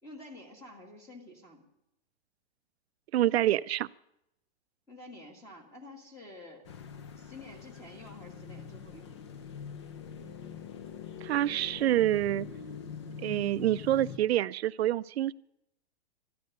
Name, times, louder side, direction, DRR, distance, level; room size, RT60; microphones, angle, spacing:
voice 1, 0.0-1.6 4.9-6.6 7.2-9.2, left 1 dB, 10° left, 4 dB, 1.6 m, -49 dB
voice 2, 3.1-3.9 11.2-12.5 13.2-15.3, right 13 dB, 75° right, 15 dB, 0.5 m, -27 dB
sound 1, 6.6-14.2, left 7 dB, 25° left, 0.5 m, -44 dB
13.0 x 12.0 x 6.5 m, 0.82 s
hypercardioid pair, 170°, 32 cm